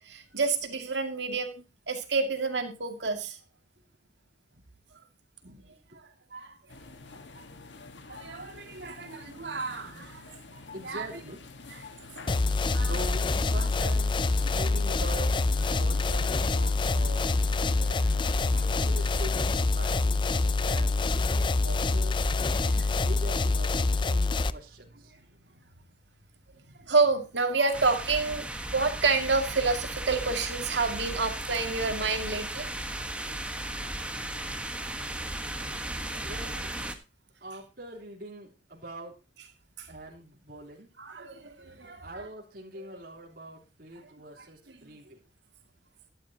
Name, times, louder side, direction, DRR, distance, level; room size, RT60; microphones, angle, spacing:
voice 1, 0.0-3.4 5.4-5.6 6.3-6.6 8.1-10.4 10.8-11.0 12.2-12.3 12.7-12.9 14.4-14.5 17.8-18.1 18.5-18.6 20.4-20.5 22.6-23.1 26.8-32.7 39.8-39.9 41.0-42.1 42.8-42.9 44.8-44.9, right 4 dB, 75° right, 5 dB, 2.3 m, -29 dB
sound 1, 6.7-19.4, left 3 dB, 85° left, 1.5 m, -48 dB
voice 2, 10.7-11.7 12.8-17.5 18.5-22.5 22.9-25.1 36.2-36.7 37.4-39.2 39.9-40.9 42.0-45.2, right 1 dB, 55° right, -3 dB, 3.4 m, -44 dB
sound 2, 12.3-24.5, left 3 dB, 25° left, 0.4 m, -26 dB
sound 3, 27.7-36.9, right 1 dB, 5° right, 1.3 m, -36 dB
12.0 x 11.5 x 2.8 m, 0.29 s
head